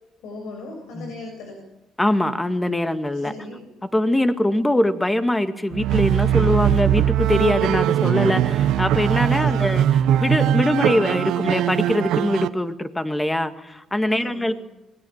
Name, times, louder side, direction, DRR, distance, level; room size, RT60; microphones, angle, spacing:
voice 1, 0.2-1.6 3.1-3.6 9.4-9.8 14.1-14.5, left 2 dB, 90° left, 3 dB, 6.7 m, -37 dB
voice 2, 2.0-3.3 3.9-9.9 10.2-14.5, left 1 dB, 10° left, 9 dB, 2.0 m, -22 dB
sound 1, 5.7-12.5, right 11 dB, 90° right, 1.1 m, -20 dB
26.0 x 21.0 x 7.3 m, 0.93 s
cardioid pair, 90°, 0 cm